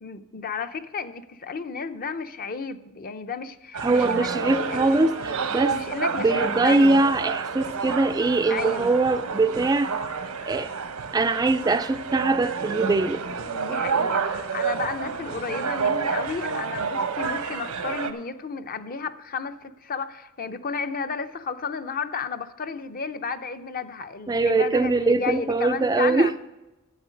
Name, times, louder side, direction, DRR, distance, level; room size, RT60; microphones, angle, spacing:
voice 1, 0.0-5.0 5.7-7.0 8.5-8.9 13.4-26.3, left 5 dB, 40° left, 10 dB, 0.6 m, -33 dB
sound 1, 3.7-18.1, right 5 dB, 90° right, 0.9 m, -29 dB
voice 2, 3.8-5.8 6.2-9.9 10.4-10.7 11.1-13.2 24.3-26.3, right 3 dB, 15° right, 9 dB, 0.3 m, -22 dB
11.5 x 8.3 x 5.1 m, 1.0 s
head